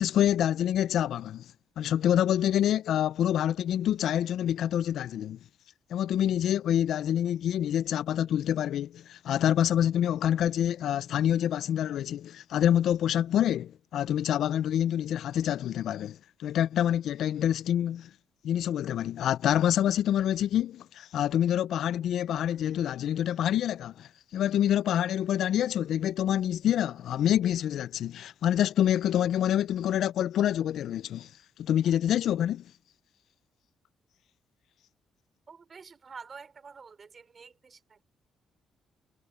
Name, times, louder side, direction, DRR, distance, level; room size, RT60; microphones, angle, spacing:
voice 1, 0.0-1.5 1.8-5.4 5.9-18.1 18.4-31.3 31.6-32.6, left 10 dB, 75° left, 0.4 m, -27 dB
voice 2, 35.5-38.0, right 5 dB, 40° right, 3.5 m, -48 dB
cardioid pair, 90°, 0 cm